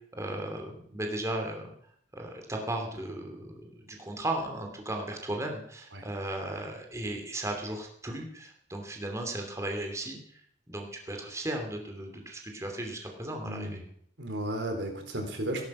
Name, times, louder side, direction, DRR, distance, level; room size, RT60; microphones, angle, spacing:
voice 1, 0.1-1.7 2.1-10.4 10.7-13.8, right 1 dB, 15° right, 2 dB, 2.8 m, -36 dB
voice 2, 13.4-13.8 14.2-15.7, right 1 dB, 75° right, 4 dB, 4.1 m, -34 dB
18.0 x 11.5 x 6.2 m, 0.64 s
head